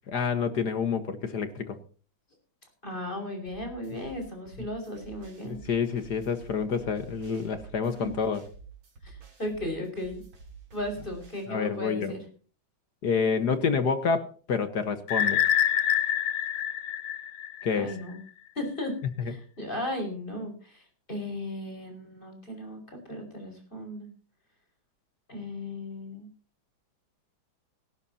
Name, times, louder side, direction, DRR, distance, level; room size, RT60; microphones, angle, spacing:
voice 1, 0.1-1.8 5.4-8.4 11.5-12.1 13.0-15.4 17.6-17.9 19.2-19.3, left 5 dB, 55° left, 10 dB, 1.8 m, -28 dB
voice 2, 2.8-5.6 7.9-8.1 9.0-10.2 10.7-12.2 17.8-18.2 18.6-18.9 19.3-20.8 21.1-22.8 23.1-24.1 25.3-26.3, left 1 dB, 25° left, 4 dB, 5.8 m, -36 dB
sound 1, 3.5-11.5, right 5 dB, 75° right, 4.1 m, -49 dB
sound 2, 15.1-17.9, left 9 dB, 90° left, 2.0 m, -26 dB
18.0 x 17.5 x 2.8 m, 0.40 s
omnidirectional pair, 2.2 m